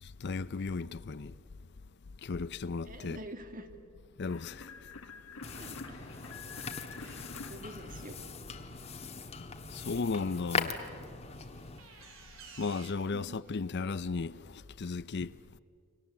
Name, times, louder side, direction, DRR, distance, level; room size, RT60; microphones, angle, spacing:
voice 1, 0.0-1.3 2.2-3.2 4.2-4.7 9.7-10.8 12.6-15.4, left 4 dB, 55° left, 0.6 m, -35 dB
voice 2, 2.9-3.7 5.6-5.7 7.0-7.2 7.5-8.1 13.1-13.4, right 1 dB, 40° right, 2.3 m, -46 dB
sound 1, 4.3-8.8, left 4 dB, 85° left, 1.6 m, -48 dB
sound 2, 5.4-11.8, left 4 dB, 30° left, 1.5 m, -40 dB
sound 3, 5.9-9.6 11.4-12.9, right 4 dB, 70° right, 3.5 m, -56 dB
29.5 x 23.5 x 7.5 m
head